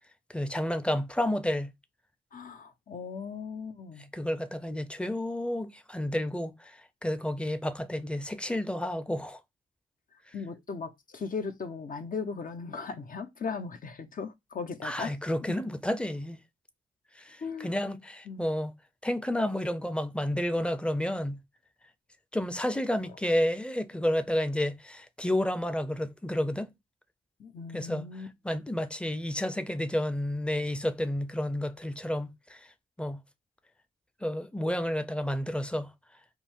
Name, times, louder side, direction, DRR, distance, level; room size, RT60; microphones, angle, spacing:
voice 1, 0.3-1.7 4.1-9.4 14.8-16.4 17.2-18.7 19.0-21.4 22.3-26.7 27.7-28.0 28.4-32.7 33.0-33.2 34.2-35.9, left 1 dB, 5° left, 0.7 m, -31 dB
voice 2, 2.3-4.1 10.3-15.1 17.4-17.7 18.3-18.5 27.4-28.3, left 5 dB, 50° left, 1.0 m, -37 dB
5.3 x 2.2 x 4.5 m
cardioid pair, 60°, 18 cm